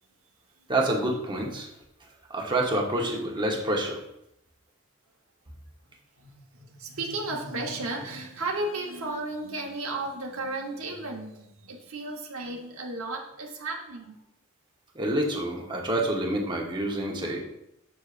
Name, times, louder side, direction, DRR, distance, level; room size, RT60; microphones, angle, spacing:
voice 1, 0.7-1.7 2.3-4.0 14.9-17.4, right 1 dB, 20° right, -1 dB, 1.0 m, -27 dB
voice 2, 6.2-14.1, right 2 dB, 80° right, -1 dB, 1.1 m, -34 dB
6.5 x 6.1 x 2.5 m, 0.82 s
head